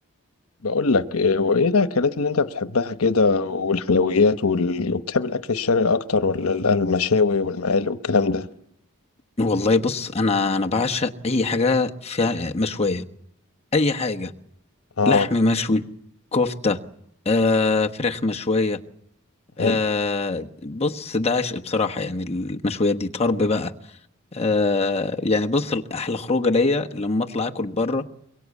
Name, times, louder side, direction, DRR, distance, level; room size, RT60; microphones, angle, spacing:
voice 1, 0.6-8.5 15.0-15.3 19.6-19.8, left 4 dB, 85° left, 1.1 m, -21 dB
voice 2, 9.4-13.0 13.7-14.3 15.0-15.8 16.3-16.8 17.2-18.8 19.6-23.7 24.3-28.0, left 3 dB, 30° left, 1.2 m, -23 dB
23.5 x 22.5 x 8.4 m
head